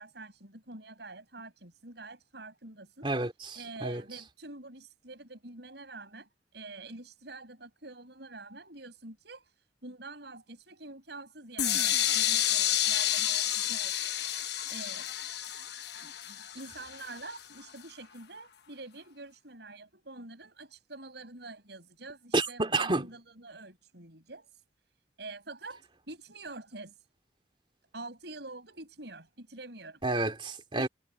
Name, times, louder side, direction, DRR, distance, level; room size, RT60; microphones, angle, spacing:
voice 1, 0.0-3.1 3.5-9.5 9.8-14.2 14.7-15.2 16.0-24.5 25.2-26.9 27.9-30.0 30.8-30.9, right 2 dB, 70° right, 6.2 m, -46 dB
voice 2, 3.0-4.0 22.3-23.1 30.0-30.9, right 2 dB, 30° right, 2.9 m, -30 dB
sound 1, 11.6-17.4, left 11 dB, 65° left, 1.3 m, -30 dB
head